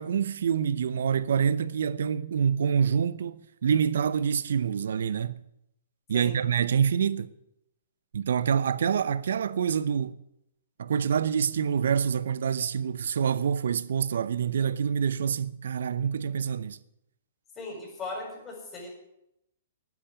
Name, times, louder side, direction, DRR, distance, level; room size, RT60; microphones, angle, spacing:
voice 1, 0.0-5.4 6.1-7.3 8.1-10.2 10.8-16.8, right 7 dB, 70° right, 0.8 m, -26 dB
voice 2, 17.6-18.9, left 2 dB, 20° left, 7.5 m, -38 dB
12.0 x 10.0 x 9.9 m
hypercardioid pair, 120°, 0 cm